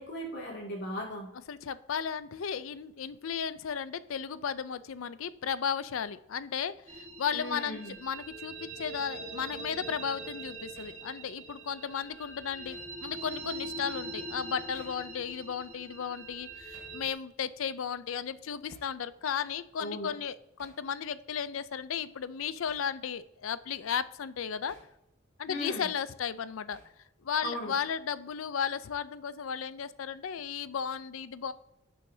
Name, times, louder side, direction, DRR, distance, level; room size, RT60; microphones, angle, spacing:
voice 1, 0.0-1.3 7.3-8.0 19.8-20.1 25.5-25.9 27.4-27.7, equal, 55° left, -1 dB, 2.4 m, -37 dB
voice 2, 1.5-24.8 25.4-26.8 27.2-31.5, left 7 dB, 75° left, 15 dB, 0.5 m, -35 dB
sound 1, 6.9-17.1, right 2 dB, 35° right, 1.5 m, -43 dB
Hammer, 10.8-11.0 12.6-12.9 14.7-15.0 16.7-17.0 18.7-18.9 20.6-20.9 22.7-22.9 24.7-24.9 26.7-27.0, right 2 dB, 55° right, 3.3 m, -57 dB
16.5 x 6.4 x 2.7 m, 0.85 s
head